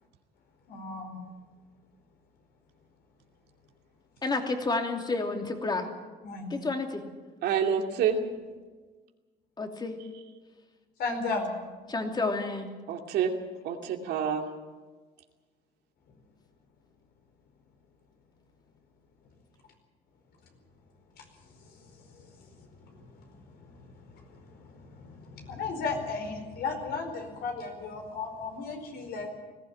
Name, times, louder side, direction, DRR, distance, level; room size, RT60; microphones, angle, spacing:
voice 1, 0.7-1.2 6.2-6.5 11.0-11.5 14.1-14.3 21.2-21.3 22.1-22.5 22.8-23.4 23.8-23.9 24.3-29.3, left 4 dB, 70° left, 4 dB, 4.8 m, -35 dB
voice 2, 4.2-5.9 6.5-7.0 9.6-9.9 11.9-12.7, left 3 dB, 25° left, 4 dB, 2.9 m, -30 dB
voice 3, 7.4-8.2 12.9-13.3 13.6-14.5, right 8 dB, 75° right, 3 dB, 2.6 m, -27 dB
20.0 x 15.5 x 9.0 m, 1.4 s
cardioid pair, 110°, 17 cm